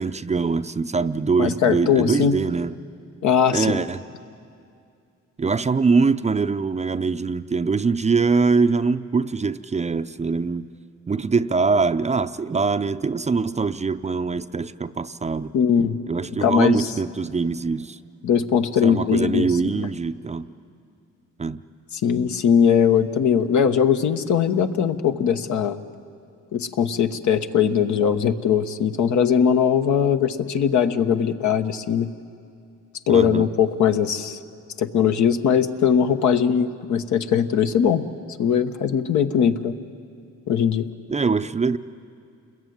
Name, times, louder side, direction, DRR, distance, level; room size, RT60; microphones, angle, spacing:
voice 1, 0.0-2.8 3.5-4.0 5.4-10.7 11.1-15.5 16.1-18.0 18.8-20.5 21.4-21.6 33.1-33.5 41.1-41.8, right 4 dB, 20° right, 11 dB, 0.6 m, -23 dB
voice 2, 1.4-2.3 3.2-3.8 15.5-16.0 16.4-16.9 18.2-19.5 19.7-19.9 22.0-25.8 26.5-32.1 33.1-34.4 34.8-38.1 38.4-39.7 40.5-40.9, left 7 dB, 70° left, 7 dB, 1.2 m, -20 dB
29.0 x 21.0 x 9.4 m, 2.4 s
cardioid pair, 90°, 30 cm